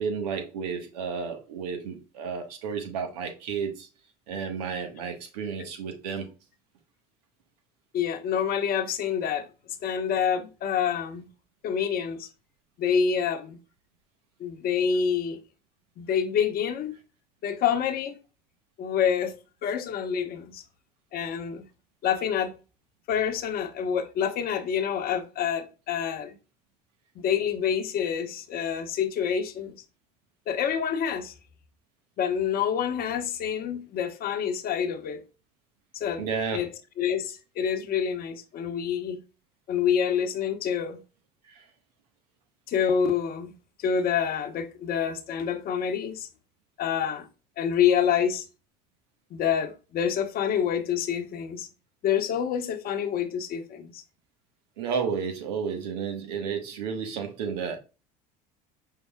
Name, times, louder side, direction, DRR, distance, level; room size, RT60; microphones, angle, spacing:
voice 1, 0.0-3.9 4.3-6.3 36.2-36.6 41.5-41.6 54.8-57.8, right 6 dB, 80° right, 1.4 m, -32 dB
voice 2, 7.9-9.5 9.8-11.3 11.6-12.3 12.8-13.6 14.4-15.4 16.0-16.9 17.4-18.2 18.8-19.3 19.6-20.6 21.1-21.6 22.0-22.5 23.1-26.3 27.2-29.8 30.5-31.3 32.2-35.2 35.9-36.3 36.5-36.7 37.0-39.2 39.7-41.0 42.7-43.5 43.8-46.3 46.8-47.3 47.6-48.4 49.3-51.7 52.0-54.0, left 8 dB, 45° left, 1.0 m, -27 dB
5.7 x 3.8 x 2.3 m
hypercardioid pair, 85°, 20 cm